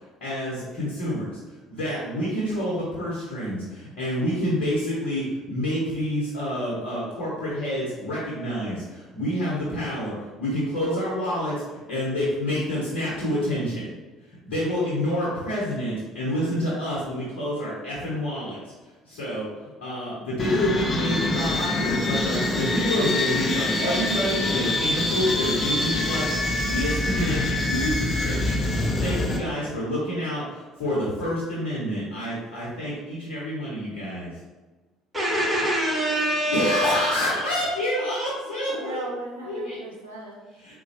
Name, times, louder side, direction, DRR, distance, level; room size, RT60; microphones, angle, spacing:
voice 1, 0.2-1.4 1.7-11.6 11.9-13.9 14.4-18.6 19.1-19.5 19.8-34.3 36.5-39.1 39.4-39.8 40.5-40.7, equal, 65° left, -7 dB, 0.9 m, -28 dB
sound 1, 20.4-29.4, left 2 dB, 35° left, 0.5 m, -25 dB
voice 2, 29.1-29.6 38.7-40.4, right 2 dB, 80° right, -2 dB, 0.6 m, -38 dB
voice 3, 35.1-37.1, equal, 15° right, -5 dB, 1.4 m, -24 dB
3.9 x 2.2 x 2.8 m, 1.3 s
figure-of-eight pair, 55°, 0 cm